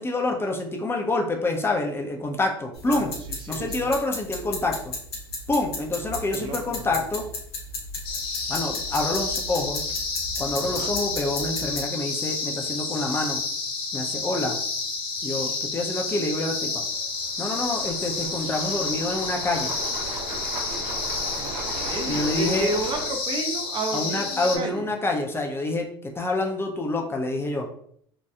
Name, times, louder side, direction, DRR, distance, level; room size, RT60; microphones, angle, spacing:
voice 1, 0.0-3.1 3.5-4.9 5.5-7.3 8.5-9.8 10.4-13.4 13.9-14.6 15.2-16.8 17.4-19.8 22.0-22.7 23.9-27.7, left 2 dB, 20° left, 1 dB, 0.4 m, -27 dB
sound 1, 2.8-11.8, left 2 dB, 85° left, 0.7 m, -34 dB
voice 2, 3.4-3.9 6.3-7.0 10.6-10.9 21.4-24.9, right 2 dB, 40° right, 4 dB, 0.5 m, -32 dB
sound 2, 8.0-24.6, left 4 dB, 40° left, 0.8 m, -30 dB
sound 3, 16.9-23.0, right 3 dB, 75° right, 0.9 m, -37 dB
2.8 x 2.2 x 2.2 m, 0.65 s
hypercardioid pair, 70°, 13 cm